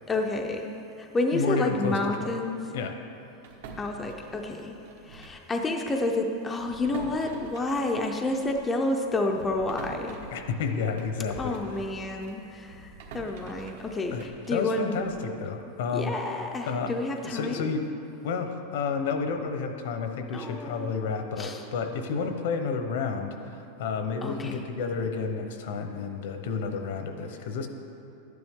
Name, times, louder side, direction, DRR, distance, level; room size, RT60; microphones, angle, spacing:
voice 1, 0.1-0.7 1.0-2.6 3.8-4.7 5.0-10.2 11.3-15.0 15.9-17.7 20.3-20.9 21.4-21.6 24.2-24.6, left 2 dB, 10° left, 2 dB, 0.4 m, -30 dB
voice 2, 1.3-2.3 2.7-3.0 10.3-11.6 14.1-16.2 16.7-17.8 18.2-27.7, left 5 dB, 65° left, 6 dB, 0.9 m, -31 dB
sound 1, 3.4-5.5 5.8-6.0 6.5-11.8 12.2-15.3, right 3 dB, 70° right, 1.2 m, -47 dB
12.0 x 9.6 x 3.6 m, 2.8 s
supercardioid pair, 170°, 0 cm